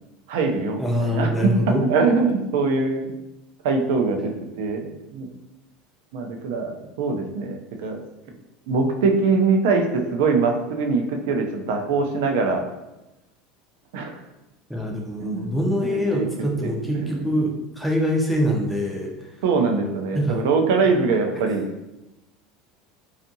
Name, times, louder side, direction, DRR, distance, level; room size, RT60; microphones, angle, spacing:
voice 1, 0.3-1.3 1.7-3.1 3.6-4.3 4.6-5.3 6.1-8.0 8.7-12.7 13.9-14.2 15.2-15.5 15.8-16.3 16.6-17.3 19.4-21.7, right 4 dB, 65° right, 3 dB, 0.4 m, -23 dB
voice 2, 0.8-1.8 14.7-19.3 20.1-20.4, equal, ahead, -1 dB, 0.4 m, -24 dB
2.6 x 2.4 x 2.6 m, 0.96 s
cardioid pair, 175°, 0 cm